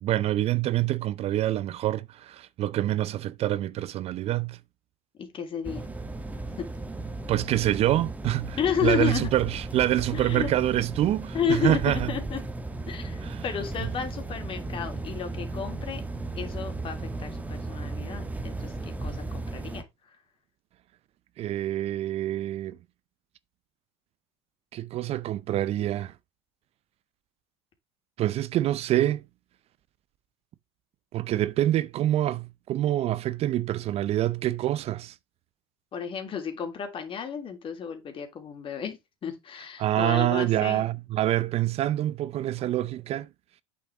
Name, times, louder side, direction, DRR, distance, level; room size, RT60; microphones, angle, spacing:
voice 1, 0.0-4.6 7.3-12.1 13.2-13.4 21.4-22.8 24.7-26.1 28.2-29.2 31.1-35.1 39.8-43.3, right 13 dB, 45° right, 0.5 m, -26 dB
voice 2, 5.2-5.8 6.6-6.7 8.6-9.3 10.1-10.5 11.3-12.4 12.9-16.0 16.3-19.8 35.9-40.9, left 7 dB, 35° left, 3.1 m, -32 dB
sound 1, 5.6-19.8, right 2 dB, 10° right, 1.2 m, -35 dB
8.4 x 7.3 x 3.5 m
supercardioid pair, 105°, 15 cm